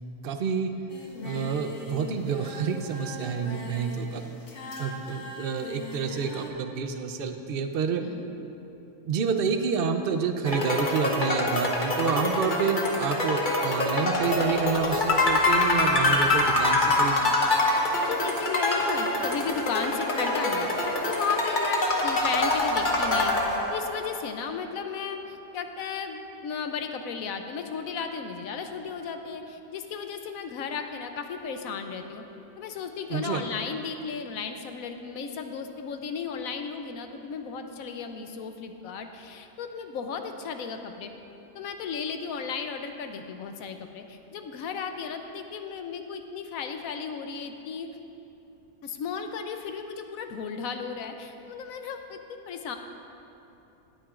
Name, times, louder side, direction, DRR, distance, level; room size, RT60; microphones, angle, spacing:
voice 1, 0.2-0.7 1.2-4.3 4.8-8.0 9.0-17.3 33.1-33.4, right 6 dB, 60° right, 6 dB, 0.6 m, -28 dB
Singing, 0.9-6.5, left 2 dB, 55° left, 1.4 m, -40 dB
voice 2, 1.2-1.5 8.0-8.3 17.7-32.2 32.6-41.1 41.5-47.9 48.8-52.8, left 6 dB, 70° left, 6 dB, 1.0 m, -35 dB
sound 1, 10.5-24.1, left 2 dB, 35° left, 1.1 m, -25 dB
18.5 x 8.8 x 2.5 m, 2.9 s
omnidirectional pair, 1.6 m